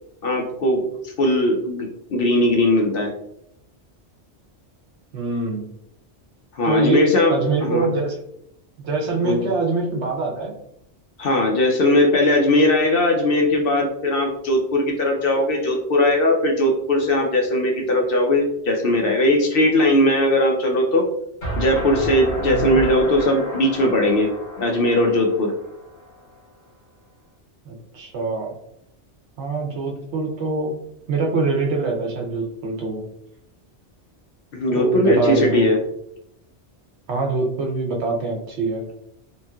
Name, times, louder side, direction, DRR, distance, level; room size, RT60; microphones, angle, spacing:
voice 1, 0.2-3.1 6.5-7.9 9.2-9.4 11.2-21.0 21.6-24.3 24.6-25.5 34.5-35.8, left 1 dB, 60° left, 1 dB, 0.7 m, -19 dB
voice 2, 5.1-5.7 6.6-8.2 8.8-10.5 22.5-22.8 27.7-28.5 29.4-30.7 31.1-33.0 34.7-35.7 37.1-38.8, right 3 dB, 70° right, 1 dB, 1.0 m, -24 dB
sound 1, 21.4-26.3, right 1 dB, 45° left, 1.4 m, -31 dB
3.0 x 2.6 x 2.2 m, 0.76 s
omnidirectional pair, 1.2 m